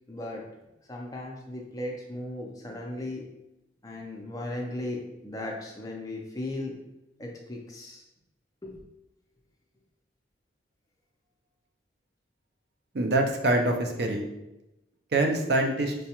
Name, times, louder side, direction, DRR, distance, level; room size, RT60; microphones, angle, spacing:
voice 1, 0.1-0.4 0.9-3.2 3.8-6.7 7.2-8.0 8.6-8.8, left 1 dB, 20° left, -1 dB, 0.5 m, -36 dB
voice 2, 12.9-14.2 15.1-15.9, right 2 dB, 60° right, 2 dB, 0.5 m, -25 dB
4.6 x 2.2 x 2.9 m, 0.92 s
head